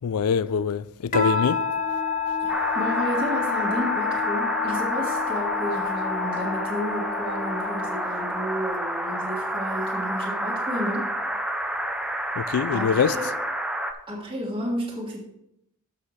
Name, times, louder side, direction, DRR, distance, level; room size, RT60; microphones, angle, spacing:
voice 1, 0.0-1.6 12.4-13.2, left 7 dB, 80° left, 0.4 m, -24 dB
Musical instrument, 1.1-8.8, left 8 dB, 35° left, 0.9 m, -29 dB
Piano, 1.1-6.1, equal, 70° right, 2.0 m, -34 dB
voice 2, 2.4-11.1 12.7-13.3 14.1-15.2, equal, 25° right, 1.6 m, -31 dB
sound 1, 2.5-13.9, right 1 dB, 5° right, 0.5 m, -29 dB
13.0 x 5.6 x 3.3 m
head